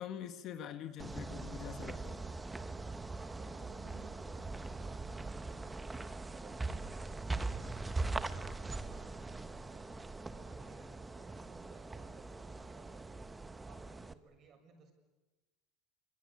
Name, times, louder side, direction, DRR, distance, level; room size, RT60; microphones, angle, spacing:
voice 1, 0.0-2.2, left 9 dB, 45° left, 9 dB, 1.8 m, -44 dB
sound 1, 1.0-14.1, right 3 dB, 10° right, 1.1 m, -41 dB
voice 2, 3.1-5.9 6.2-8.3 8.6-13.3 13.6-14.9, right 5 dB, 40° right, 5 dB, 6.9 m, -60 dB
27.0 x 25.0 x 8.6 m, 1.1 s
supercardioid pair, 135°, 0 cm